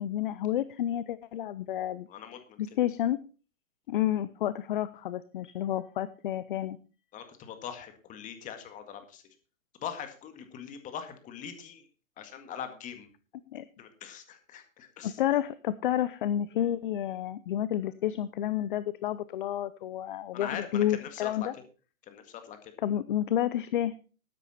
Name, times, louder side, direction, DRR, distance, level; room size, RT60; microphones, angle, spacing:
voice 1, 0.0-2.1 2.6-3.2 3.9-6.8 13.5-13.6 15.0-21.5 22.8-23.9, left 11 dB, 40° left, 16 dB, 0.6 m, -30 dB
voice 2, 2.1-2.6 7.1-9.2 9.8-11.8 12.2-13.1 13.8-15.2 20.3-21.5 22.1-22.7, left 8 dB, 20° left, 8 dB, 1.9 m, -42 dB
13.0 x 9.7 x 4.2 m, 0.35 s
hypercardioid pair, 145°, 41 cm